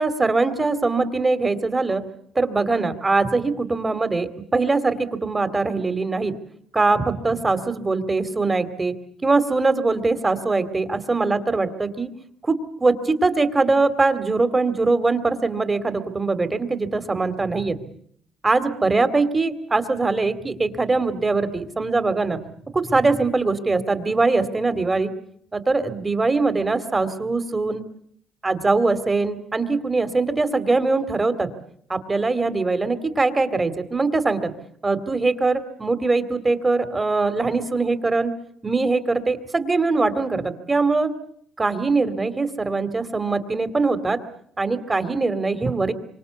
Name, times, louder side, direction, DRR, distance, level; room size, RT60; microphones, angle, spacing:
voice 1, 0.0-2.0 2.3-6.4 6.7-8.9 9.2-12.1 12.4-17.8 18.4-22.4 22.7-25.1 25.5-27.8 28.4-31.5 31.9-34.5 34.8-38.3 38.6-41.1 41.6-44.2 44.6-45.9, right 3 dB, 20° right, 12 dB, 2.5 m, -22 dB
27.0 x 25.0 x 8.2 m, 0.67 s
cardioid pair, 125°, 0 cm